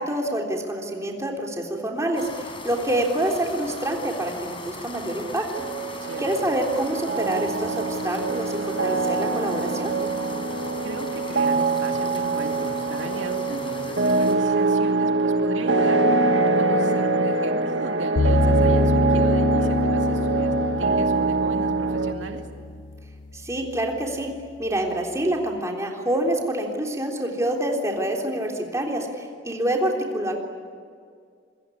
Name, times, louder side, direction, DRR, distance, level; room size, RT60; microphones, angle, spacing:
voice 1, 0.0-5.5 5.9-9.9 23.3-24.3 24.6-30.4, right 1 dB, 15° right, 1 dB, 3.5 m, -27 dB
sound 1, 2.1-14.3, left 2 dB, 30° left, 4.4 m, -39 dB
sound 2, 5.5-22.1, right 3 dB, 70° right, 1.7 m, -23 dB
voice 2, 10.8-22.5, right 1 dB, 85° right, 4 dB, 2.4 m, -36 dB
sound 3, 18.2-23.3, left 3 dB, 80° left, 0.7 m, -25 dB
26.5 x 22.5 x 9.8 m, 2.1 s
head